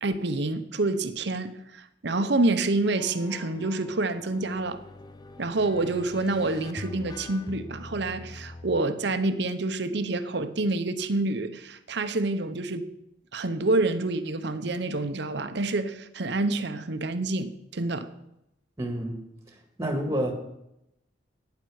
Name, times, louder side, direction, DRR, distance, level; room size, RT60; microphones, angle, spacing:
voice 1, 0.0-4.8 5.4-12.9 13.3-18.1 19.8-20.1, right 2 dB, 60° right, 0.8 m, -28 dB
sound 1, 2.9-8.8, left 2 dB, 20° left, 0.5 m, -43 dB
voice 2, 18.8-19.2 19.5-20.3, equal, 15° right, 1.7 m, -29 dB
12.0 x 9.6 x 4.8 m
head